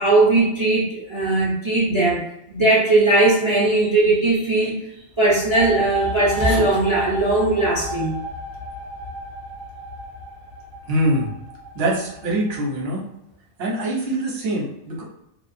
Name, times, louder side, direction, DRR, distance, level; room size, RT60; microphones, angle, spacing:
voice 1, 0.0-2.2 2.5-4.8 5.2-8.2, right 2 dB, 40° right, -7 dB, 0.4 m, -19 dB
sound 1, 5.3-12.7, equal, 80° left, 1.0 m, -32 dB
voice 2, 10.9-11.3 11.7-13.0 13.6-15.0, right 1 dB, 55° right, -3 dB, 0.9 m, -23 dB
2.5 x 2.3 x 2.5 m, 0.81 s
omnidirectional pair, 1.5 m